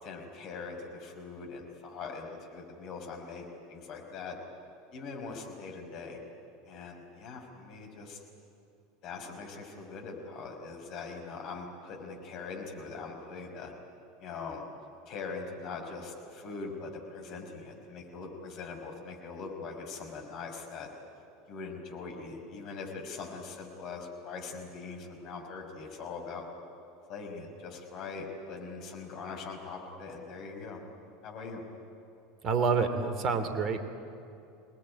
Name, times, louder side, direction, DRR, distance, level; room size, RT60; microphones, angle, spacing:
voice 1, 0.0-4.4 4.9-6.2 6.7-8.2 9.0-13.7 14.2-14.6 15.1-20.9 21.5-26.4 27.1-30.8 31.2-31.6, left 4 dB, 50° left, 3 dB, 5.6 m, -42 dB
voice 2, 32.4-33.8, right 5 dB, 40° right, 9 dB, 2.9 m, -27 dB
27.0 x 19.5 x 10.0 m, 2.6 s
figure-of-eight pair, 75°, 0 cm